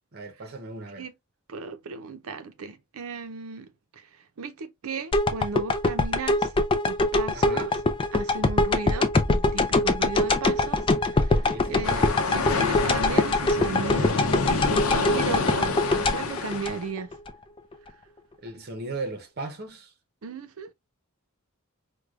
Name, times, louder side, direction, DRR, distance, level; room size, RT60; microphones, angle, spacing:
voice 1, 0.1-1.1 7.3-7.7 11.4-11.9 18.4-19.9, right 2 dB, 50° right, 0.8 m, -37 dB
voice 2, 1.5-6.5 6.8-7.7 8.1-14.2 14.7-17.1 20.2-20.7, right 4 dB, 80° right, 0.5 m, -35 dB
sound 1, 5.1-17.3 17.7-17.8, left 2 dB, 25° left, 0.4 m, -23 dB
sound 2, 11.8-16.8, left 4 dB, 85° left, 0.7 m, -27 dB
4.7 x 2.2 x 2.4 m
head